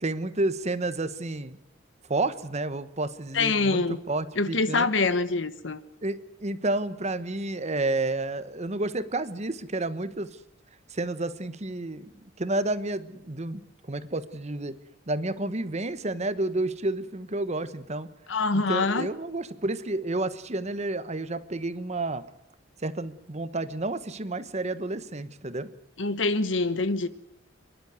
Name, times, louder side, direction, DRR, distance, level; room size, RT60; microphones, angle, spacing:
voice 1, 0.0-1.6 2.1-4.9 6.0-10.3 10.9-13.6 13.9-14.8 15.1-18.1 18.5-22.2 22.8-25.7, right 2 dB, 35° right, 1.1 m, -30 dB
voice 2, 3.3-4.0 4.4-5.8 18.3-19.1 26.0-27.1, left 3 dB, 70° left, 1.3 m, -25 dB
28.5 x 11.5 x 9.4 m
head